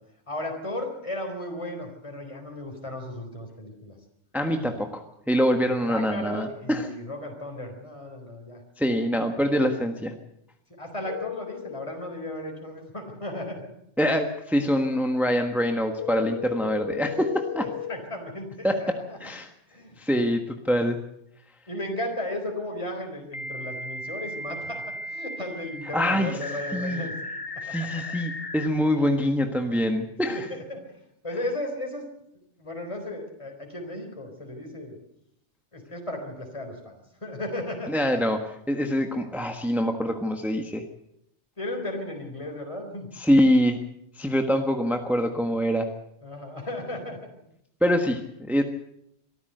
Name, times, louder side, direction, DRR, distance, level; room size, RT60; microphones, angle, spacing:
voice 1, 0.3-4.0 5.7-8.6 10.8-13.7 17.9-19.2 19.7-20.2 21.7-27.1 27.7-28.0 30.3-32.0 32.6-35.0 35.7-37.9 41.6-43.1 46.2-47.2, left 1 dB, 25° left, 3 dB, 3.9 m, -35 dB
voice 2, 4.3-6.9 8.8-10.1 14.0-17.7 18.6-19.5 20.0-21.0 25.9-26.4 26.7-27.1 27.6-30.5 37.9-40.8 43.1-43.8 44.2-45.9 47.8-48.6, equal, ahead, 5 dB, 1.4 m, -25 dB
sound 1, 11.1-11.9 16.0-17.9 20.6-20.7 23.3-28.7, left 3 dB, 55° left, 1.7 m, -36 dB
24.0 x 14.0 x 7.9 m, 0.77 s
omnidirectional pair, 1.2 m